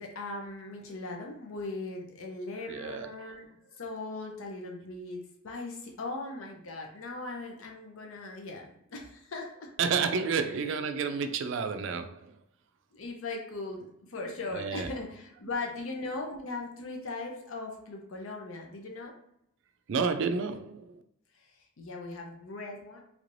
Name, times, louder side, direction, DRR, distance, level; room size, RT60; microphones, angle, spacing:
voice 1, 0.0-3.5 3.8-9.7 10.3-10.6 12.9-19.1 21.8-23.0, left 2 dB, 75° left, 0.6 m, -39 dB
voice 2, 2.7-3.1 9.8-12.3 14.5-14.9 19.9-21.0, right 5 dB, 60° right, 0.3 m, -30 dB
3.2 x 3.1 x 2.6 m
head